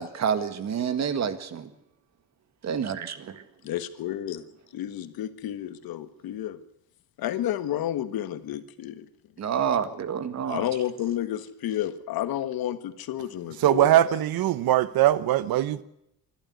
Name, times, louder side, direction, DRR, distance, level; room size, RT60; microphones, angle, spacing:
voice 1, 0.0-1.7 2.6-3.4 9.4-10.7, right 7 dB, 45° right, 1.9 m, -28 dB
voice 2, 3.6-4.4 4.7-6.6 7.2-9.1 10.4-14.1, left 11 dB, 70° left, 1.6 m, -31 dB
voice 3, 13.6-15.8, right 13 dB, 70° right, 1.1 m, -21 dB
25.5 x 12.5 x 9.5 m
cardioid pair, 145°, 37 cm